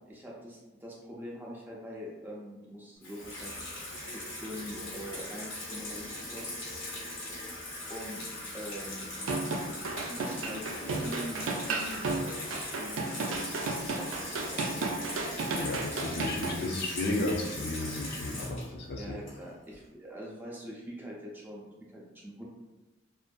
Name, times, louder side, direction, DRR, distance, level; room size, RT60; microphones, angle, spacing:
voice 1, 0.1-3.5 4.1-6.5 7.9-8.2 8.5-9.1 9.6-14.9 19.0-22.4, equal, 10° right, -4 dB, 0.4 m, -44 dB
Water tap faucet / Sink (filling or washing), 3.0-19.7, left 1 dB, 85° left, 1.1 m, -40 dB
sound 1, 9.2-16.6, right 3 dB, 85° right, 0.4 m, -33 dB
voice 2, 15.5-19.1, left 2 dB, 55° left, 0 dB, 0.4 m, -33 dB
2.5 x 2.5 x 2.2 m, 1.1 s
head